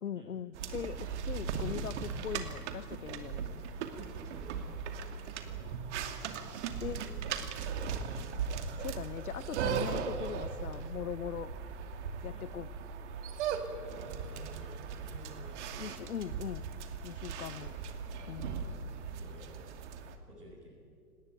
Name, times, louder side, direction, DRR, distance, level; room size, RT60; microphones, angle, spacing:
voice 1, 0.0-3.5 6.8-7.0 8.8-11.5 12.2-12.7 15.8-16.7 17.0-17.7 18.3-18.6, left 8 dB, 70° left, 20 dB, 1.0 m, -40 dB
sound 1, 0.5-20.1, right 6 dB, 50° right, 2.6 m, -38 dB
voice 2, 4.3-5.6 6.8-8.4 12.2-12.5 13.9-15.6 17.3-17.8 18.1-18.7 19.1-19.6 20.3-20.9, right 1 dB, 80° right, -4 dB, 7.0 m, -53 dB
29.0 x 19.5 x 9.2 m, 2.3 s
figure-of-eight pair, 110°, 46 cm